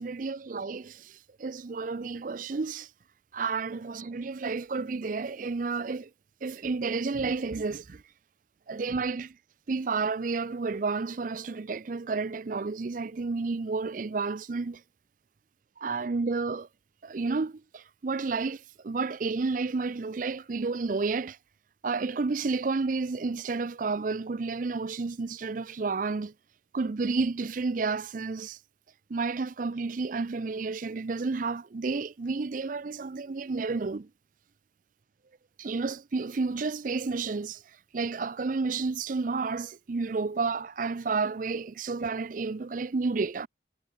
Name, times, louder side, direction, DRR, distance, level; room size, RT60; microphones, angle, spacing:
voice 1, 0.0-2.9 3.3-6.1 6.4-8.0 8.7-9.4 9.7-14.8 15.8-16.7 17.0-21.4 21.8-26.3 26.7-28.6 29.1-34.1 35.6-43.5, right 4 dB, 45° right, 0.4 m, -31 dB
head